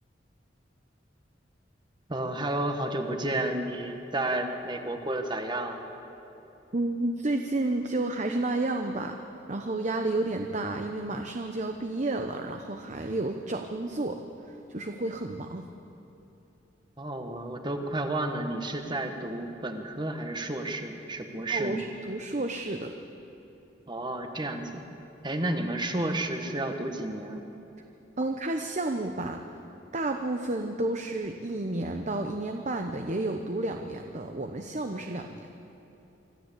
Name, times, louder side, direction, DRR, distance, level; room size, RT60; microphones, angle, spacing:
voice 1, 2.1-5.8 17.0-21.8 23.9-24.8 25.2-27.4, right 1 dB, 25° right, 5 dB, 1.5 m, -31 dB
voice 2, 6.7-9.2 9.5-14.2 14.7-15.6 21.5-22.9 28.2-29.4 29.9-35.5, right 2 dB, 40° right, 5 dB, 0.9 m, -31 dB
25.0 x 13.0 x 8.3 m, 3.0 s
head